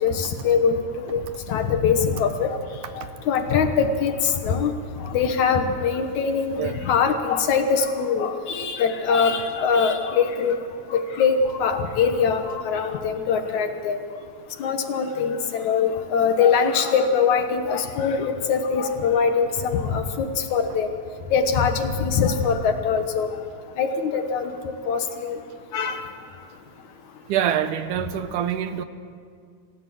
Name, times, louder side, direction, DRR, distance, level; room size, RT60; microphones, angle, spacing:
voice 1, 0.0-1.2 1.5-2.6 3.0-4.7 5.0-10.6 10.9-14.0 14.6-20.9 21.3-23.3 23.8-25.4 25.7-26.0, left 6 dB, 65° left, 6 dB, 2.4 m, -22 dB
voice 2, 27.3-28.8, right 10 dB, 75° right, 10 dB, 2.2 m, -25 dB
27.0 x 16.0 x 7.8 m, 2.1 s
omnidirectional pair, 3.9 m